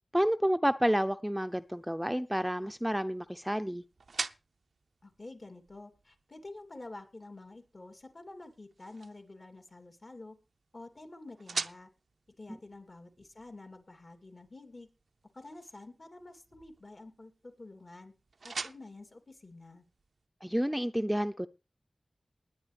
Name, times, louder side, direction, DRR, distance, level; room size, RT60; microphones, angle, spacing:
voice 1, 0.1-3.8 20.4-21.5, equal, 5° right, 10 dB, 0.6 m, -29 dB
sound 1, 1.4-20.3, right 4 dB, 85° right, 0.6 m, -47 dB
voice 2, 5.0-10.4 10.7-11.9 12.4-14.9 15.3-18.1 18.4-19.9, left 2 dB, 50° left, 6 dB, 3.0 m, -49 dB
20.0 x 9.2 x 3.4 m, 0.31 s
wide cardioid pair, 50°, 0 cm